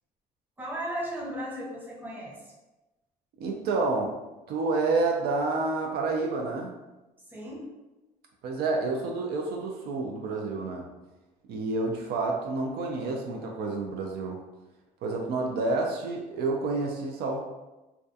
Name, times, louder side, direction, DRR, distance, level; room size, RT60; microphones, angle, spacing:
voice 1, 0.6-2.5 7.3-7.7, equal, 10° right, -4 dB, 0.7 m, -36 dB
voice 2, 3.4-4.2 4.5-6.8 8.4-10.9 11.5-14.4 15.0-17.4, right 3 dB, 70° right, 1 dB, 0.4 m, -29 dB
2.3 x 2.3 x 2.6 m, 1.1 s
cardioid pair, 110°, 17 cm